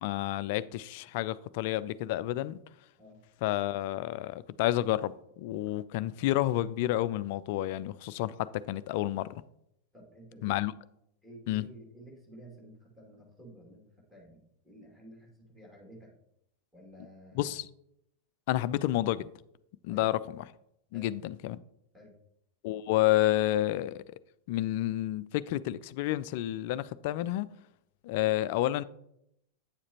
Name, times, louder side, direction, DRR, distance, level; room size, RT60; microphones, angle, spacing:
voice 1, 0.0-2.6 3.4-9.4 10.4-10.7 11.5-11.7 17.4-17.7 18.5-19.3 19.8-20.5 20.9-21.6 22.6-24.0 24.5-27.5 28.0-28.8, left 15 dB, 50° left, 0.3 m, -30 dB
voice 2, 9.9-10.6 11.2-16.1 16.7-17.5 19.9-20.1 20.9-21.1 21.9-22.1, right 1 dB, 5° right, 2.5 m, -52 dB
8.8 x 7.2 x 3.0 m
figure-of-eight pair, 90°, 0 cm